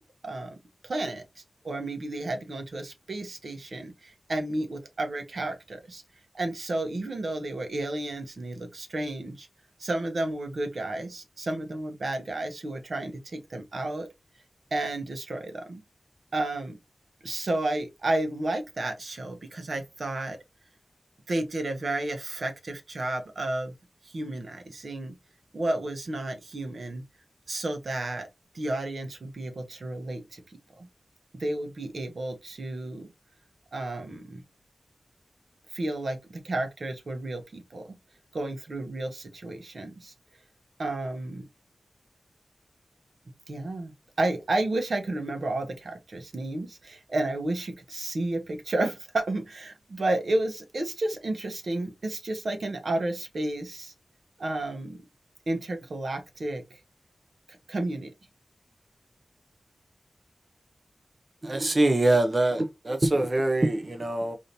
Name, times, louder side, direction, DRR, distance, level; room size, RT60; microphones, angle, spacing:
voice 1, 0.2-6.0 6.3-9.5 9.8-14.1 14.7-15.8 16.3-16.8 17.2-20.4 21.3-23.7 24.0-25.2 25.5-27.0 27.5-28.3 28.5-30.9 31.3-33.1 33.7-34.4 35.7-38.0 38.3-40.1 40.8-41.5 43.5-53.9 54.4-55.0 55.5-56.8 57.5-58.1, right 2 dB, 70° right, 0.9 m, -32 dB
voice 2, 61.4-64.4, right 2 dB, 35° right, 0.7 m, -24 dB
4.9 x 2.7 x 2.7 m
wide cardioid pair, 85°, 0 cm